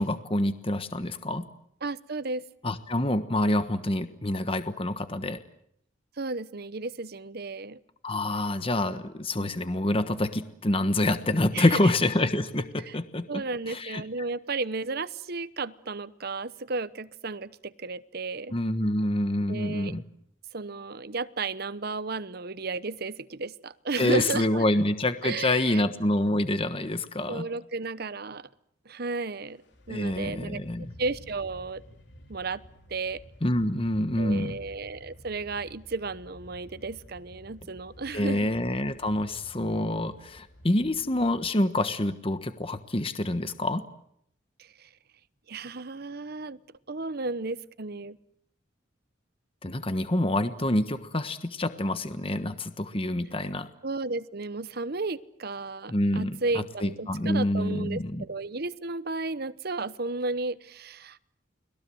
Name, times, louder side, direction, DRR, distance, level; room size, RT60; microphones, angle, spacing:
voice 1, 0.0-1.4 2.6-5.4 8.0-14.0 18.5-20.0 24.0-27.4 29.9-30.9 33.4-34.6 38.1-43.9 49.6-53.7 55.9-58.2, left 1 dB, 30° left, 10 dB, 1.3 m, -27 dB
voice 2, 1.8-2.4 6.2-7.8 11.5-11.9 12.9-13.0 13.3-18.5 19.5-19.9 20.5-24.6 25.2-25.8 27.3-28.5 28.9-29.6 29.9-30.6 31.0-31.8 32.3-32.6 32.9-33.2 34.2-38.5 44.8-44.9 45.5-46.6 46.9-48.2 53.8-61.2, right 3 dB, 55° right, 15 dB, 1.0 m, -33 dB
sound 1, 29.3-41.5, equal, 65° left, 3.5 m, -51 dB
30.0 x 21.5 x 7.8 m, 0.73 s
head